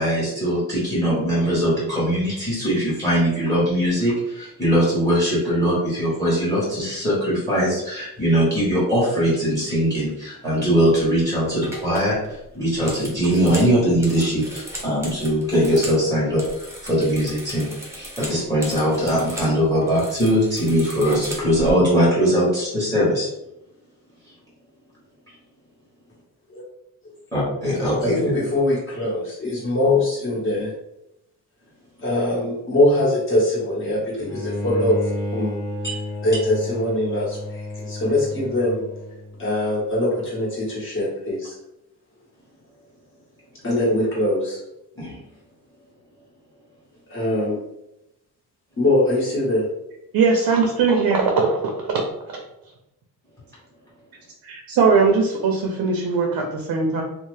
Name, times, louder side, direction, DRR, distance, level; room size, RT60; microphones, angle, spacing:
voice 1, 0.0-23.3 27.3-28.2 35.8-36.0 45.0-45.2, equal, 10° left, -7 dB, 1.2 m, -21 dB
sound 1, 11.0-11.2 11.6-16.0 16.3-19.5 19.8-21.7, equal, 5° right, 0.7 m, -37 dB
voice 2, 28.0-30.7 32.0-35.6 36.2-38.8 39.4-41.5 43.6-44.6 47.1-47.6 48.8-49.7, left 1 dB, 35° left, -6 dB, 1.4 m, -22 dB
Bowed string instrument, 34.2-39.4, left 1 dB, 50° left, 0.8 m, -31 dB
voice 3, 50.1-52.0 54.4-57.0, right 4 dB, 65° right, 2 dB, 0.6 m, -20 dB
2.7 x 2.0 x 3.2 m, 0.86 s
cardioid pair, 115°, 37 cm